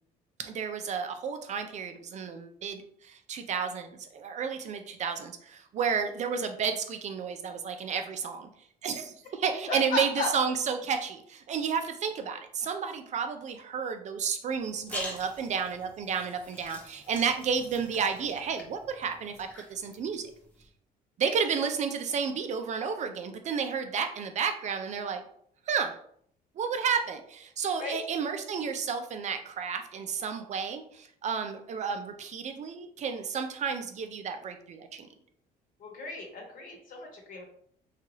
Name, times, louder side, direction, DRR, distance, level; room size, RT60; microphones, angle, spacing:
voice 1, 0.4-8.5 8.8-20.3 21.2-25.2 25.7-26.0 26.6-35.1, right 6 dB, 45° right, 7 dB, 0.4 m, -32 dB
voice 2, 9.7-10.3 21.2-21.4 27.8-28.0 35.8-37.4, left 3 dB, 55° left, 0 dB, 1.0 m, -35 dB
sound 1, 14.5-20.6, left 1 dB, 10° left, 0.7 m, -45 dB
2.8 x 2.3 x 3.0 m, 0.64 s
cardioid pair, 110°, 17 cm